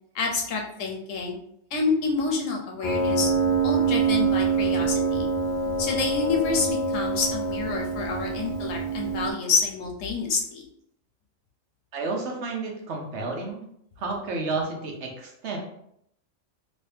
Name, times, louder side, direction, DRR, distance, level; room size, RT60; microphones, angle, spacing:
voice 1, 0.1-1.4 1.7-3.3 3.6-5.3 5.8-10.6, left 4 dB, 80° left, 1 dB, 1.2 m, -28 dB
Piano, 2.8-9.3, right 4 dB, 55° left, 0.6 m, -25 dB
voice 2, 11.9-13.6 14.0-15.6, right 3 dB, 65° right, 1 dB, 1.1 m, -31 dB
3.1 x 2.8 x 3.4 m, 0.72 s
omnidirectional pair, 1.3 m